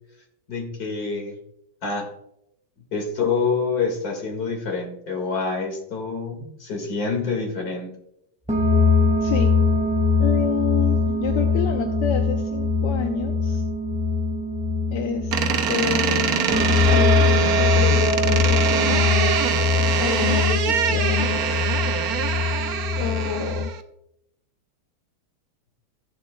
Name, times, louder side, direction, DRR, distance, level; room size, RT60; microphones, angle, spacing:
voice 1, 0.5-1.4 1.8-2.1 2.8-7.9, left 4 dB, 60° left, 2 dB, 2.4 m, -27 dB
sound 1, 8.5-23.6, left 3 dB, 5° right, 2.0 m, -22 dB
voice 2, 9.2-9.5 10.2-13.6 14.9-15.4 15.7-19.3 20.0-21.6 23.0-23.7, left 9 dB, 85° left, 4 dB, 1.4 m, -28 dB
Door, 15.3-23.8, right 8 dB, 65° right, 1.1 m, -24 dB
15.5 x 7.5 x 2.2 m, 0.80 s
omnidirectional pair, 1.8 m